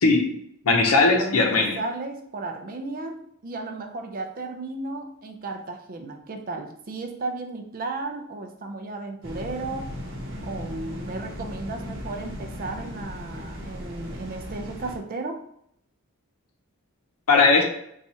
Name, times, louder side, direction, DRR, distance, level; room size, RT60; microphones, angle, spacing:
voice 1, 0.6-1.8 17.3-17.6, left 3 dB, 85° left, 3 dB, 0.7 m, -18 dB
voice 2, 1.2-10.0 10.4-15.4, right 3 dB, 40° right, 5 dB, 0.4 m, -34 dB
sound 1, 9.2-15.0, equal, 55° right, 0.9 m, -37 dB
4.2 x 2.4 x 2.7 m, 0.71 s
head